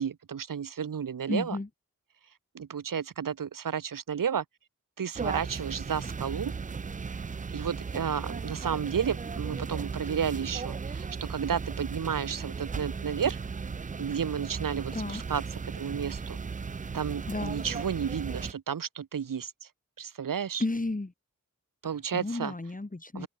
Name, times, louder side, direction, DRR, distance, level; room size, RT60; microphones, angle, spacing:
voice 1, 0.0-1.6 2.5-4.4 5.0-6.5 7.5-13.4 14.0-16.4 16.9-19.7 20.0-20.6 21.8-22.5 23.1-23.3, right 7 dB, 90° right, 0.8 m, -32 dB
voice 2, 1.3-1.7 14.9-15.2 17.3-17.6 20.6-21.1 21.8-23.3, left 2 dB, 25° left, 1.6 m, -33 dB
sound 1, 5.2-18.5, right 5 dB, 25° right, 0.3 m, -36 dB
open air
wide cardioid pair, 55°, 32 cm